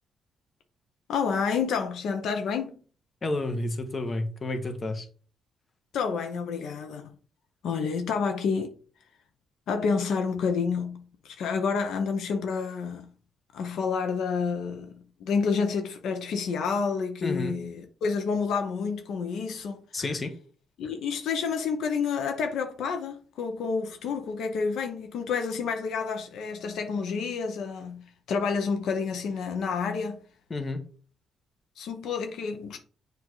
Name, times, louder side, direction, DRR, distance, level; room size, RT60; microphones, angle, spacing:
voice 1, 1.1-2.8 5.9-7.1 7.6-8.7 9.7-13.1 13.5-20.0 20.8-30.2 31.8-32.8, left 5 dB, 75° left, 0.8 m, -29 dB
voice 2, 3.2-5.1 17.2-17.5 19.9-20.3 30.5-30.8, left 2 dB, 30° left, 1.1 m, -30 dB
7.5 x 2.7 x 4.6 m
cardioid pair, 90°, 0 cm